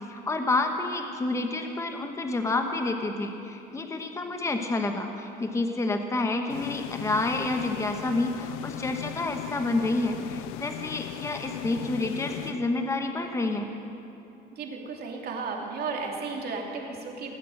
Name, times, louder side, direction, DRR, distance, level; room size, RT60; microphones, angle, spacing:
voice 1, 0.1-13.7, left 2 dB, 15° left, 5 dB, 1.0 m, -29 dB
sound 1, 6.5-13.3, left 16 dB, 75° left, 0.4 m, -39 dB
voice 2, 14.6-17.3, right 4 dB, 45° right, 0 dB, 2.7 m, -34 dB
19.5 x 8.4 x 7.7 m, 2.9 s
cardioid pair, 110°, 21 cm